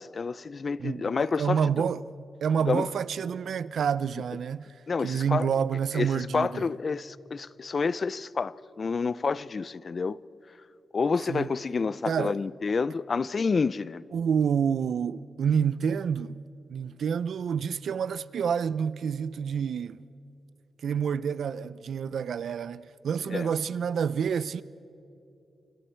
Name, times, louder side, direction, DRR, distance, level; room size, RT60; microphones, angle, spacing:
voice 1, 0.0-1.6 2.7-2.9 4.9-5.5 5.9-10.2 10.9-14.0 23.3-23.5, left 4 dB, 40° left, 0.4 m, -29 dB
voice 2, 0.8-2.0 2.4-4.7 5.0-6.6 11.3-11.5 12.1-12.4 14.1-16.4 16.7-20.0 20.8-24.6, right 7 dB, 75° right, 0.5 m, -28 dB
28.5 x 26.0 x 4.5 m
wide cardioid pair, 110°, 0 cm